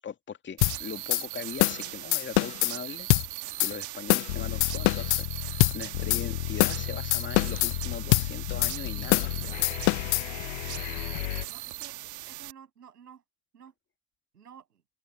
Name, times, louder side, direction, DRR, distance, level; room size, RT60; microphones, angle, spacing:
voice 1, 0.0-3.1 3.6-9.3, left 7 dB, 25° left, 2.5 m, -40 dB
sound 1, 0.6-0.8 1.1-1.2 1.6-1.8 2.1-2.7 3.1-3.3 3.6-3.7 4.1-4.3 4.6-5.2 5.6-5.8 6.1-6.2 6.6-6.8 7.1-7.7 8.1-8.3 8.6-8.7 9.1-9.3 9.6-10.2, left 34 dB, 40° left, 0.4 m, -23 dB
sound 2, 0.6-12.5, right 16 dB, 40° right, 1.5 m, -39 dB
sound 3, 4.3-11.5, left 21 dB, 60° left, 0.9 m, -34 dB
voice 2, 11.5-13.2 13.5-13.7 14.3-14.8, right 8 dB, 80° right, 7.1 m, -52 dB
open air
figure-of-eight pair, 75°, 46 cm